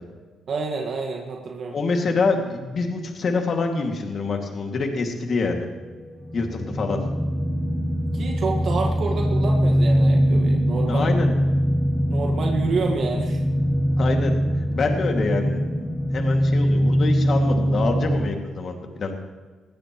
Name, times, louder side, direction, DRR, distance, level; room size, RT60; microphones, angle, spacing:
voice 1, 0.5-1.8 8.1-11.1 12.1-13.4, right 4 dB, 60° right, 1 dB, 1.7 m, -28 dB
voice 2, 1.7-5.7 6.3-7.0 10.9-11.3 14.0-14.3 14.6-15.9 16.1-19.1, left 3 dB, 50° left, 3 dB, 2.3 m, -25 dB
sound 1, 6.0-18.3, equal, 10° left, 1.2 m, -22 dB
20.0 x 15.5 x 3.1 m, 1.4 s
cardioid pair, 90°, 0 cm